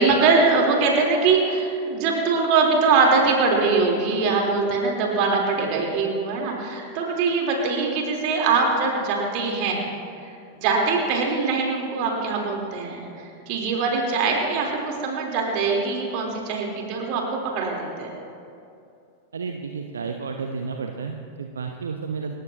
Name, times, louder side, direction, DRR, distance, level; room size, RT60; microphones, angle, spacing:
voice 1, 0.0-9.8 10.6-13.1 13.5-18.1, right 4 dB, 45° right, -1 dB, 3.8 m, -22 dB
voice 2, 19.3-22.4, right 5 dB, 70° right, 4 dB, 0.9 m, -31 dB
28.5 x 14.5 x 3.0 m, 2.6 s
figure-of-eight pair, 90°, 0 cm